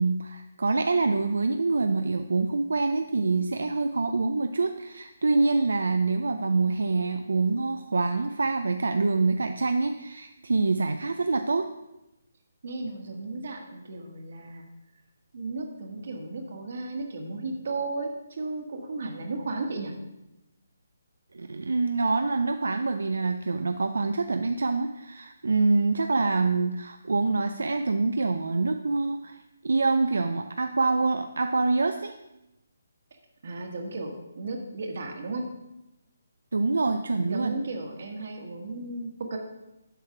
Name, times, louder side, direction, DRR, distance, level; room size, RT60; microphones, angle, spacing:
voice 1, 0.0-11.7 21.3-29.4 29.6-32.2 36.5-37.5, right 3 dB, 85° right, 7 dB, 0.4 m, -25 dB
voice 2, 12.6-14.6 15.3-19.9 33.4-35.5 37.2-39.4, right 3 dB, 60° right, 2 dB, 1.6 m, -34 dB
7.8 x 4.9 x 5.8 m, 0.93 s
hypercardioid pair, 160°, 0 cm